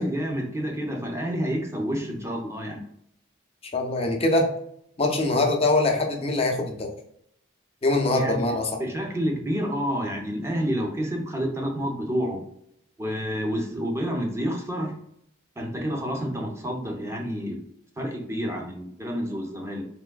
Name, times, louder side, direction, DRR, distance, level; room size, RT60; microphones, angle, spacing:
voice 1, 0.0-2.8 8.1-8.5 8.8-12.4 13.0-15.0 15.6-17.7 18.0-19.9, equal, 15° right, 1 dB, 0.6 m, -29 dB
voice 2, 3.7-4.5 5.0-6.9 7.8-8.8, left 2 dB, 30° left, 2 dB, 0.6 m, -23 dB
3.5 x 3.1 x 2.2 m, 0.72 s
head